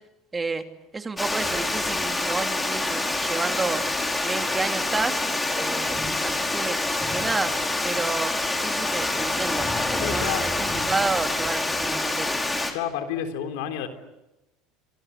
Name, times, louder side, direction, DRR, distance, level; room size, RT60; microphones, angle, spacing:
voice 1, 0.3-0.6 0.9-3.8 4.2-5.2 5.5-6.8 7.1-7.5 7.8-12.4, right 4 dB, 20° right, 6 dB, 2.9 m, -30 dB
Water, 1.2-12.7, left 2 dB, 15° left, 5.4 m, -26 dB
voice 2, 10.0-10.4 12.7-13.9, left 9 dB, 75° left, 6 dB, 3.7 m, -30 dB
27.5 x 26.0 x 8.4 m, 0.97 s
hypercardioid pair, 80°, 0 cm